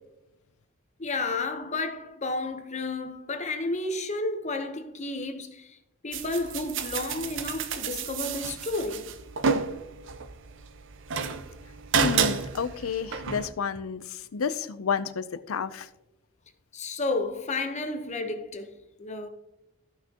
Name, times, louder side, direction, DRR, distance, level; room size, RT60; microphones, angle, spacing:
voice 1, 1.0-5.8 6.0-9.1 16.7-19.3, left 2 dB, 35° left, 0.9 m, -32 dB
sound 1, 6.1-13.5, right 5 dB, 60° right, 0.6 m, -30 dB
voice 2, 12.0-14.0 14.3-15.9, left 6 dB, 90° left, 0.5 m, -30 dB
14.5 x 5.9 x 2.9 m
head